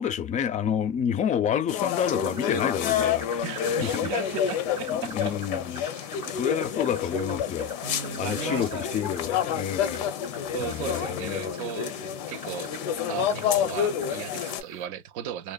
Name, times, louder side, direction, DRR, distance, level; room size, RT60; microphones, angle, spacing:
voice 1, 0.0-4.1 4.9-7.7 8.2-10.1 10.6-11.4, left 8 dB, 35° left, 0.4 m, -29 dB
sound 1, 1.7-14.6, left 9 dB, 85° left, 0.5 m, -29 dB
sound 2, 1.9-14.9, right 4 dB, 15° right, 0.5 m, -48 dB
voice 2, 3.4-5.4 6.2-6.3 7.8-9.0 10.5-12.7 13.1-15.5, right 9 dB, 75° right, 0.4 m, -36 dB
2.7 x 2.1 x 2.3 m
supercardioid pair, 95°, 20 cm